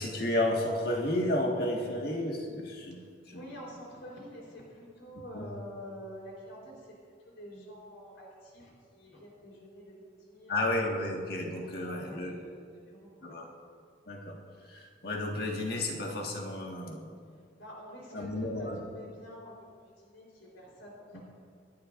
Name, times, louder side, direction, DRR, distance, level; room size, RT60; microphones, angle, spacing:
voice 1, 0.0-3.0 3.3-3.6 5.3-5.5 10.5-12.4 13.2-13.5 14.1-14.4 14.7-17.1 18.1-18.8 21.1-21.2, left 1 dB, 50° left, 0 dB, 1.9 m, -32 dB
voice 2, 3.3-10.9 11.5-13.4 17.3-21.2, equal, 85° left, -3 dB, 4.2 m, -48 dB
27.0 x 11.0 x 2.6 m, 2.2 s
head